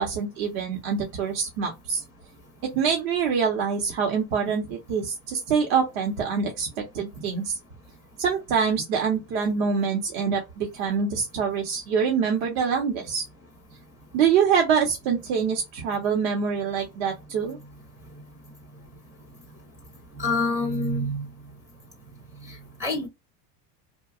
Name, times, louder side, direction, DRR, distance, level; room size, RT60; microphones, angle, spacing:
voice 1, 0.0-2.0 2.6-7.6 8.2-13.2 14.1-17.6, right 6 dB, 65° right, 0.9 m, -25 dB
voice 2, 20.2-21.2 22.5-23.1, left 2 dB, 5° right, 0.4 m, -27 dB
2.7 x 2.2 x 2.4 m
cardioid pair, 170°, 43 cm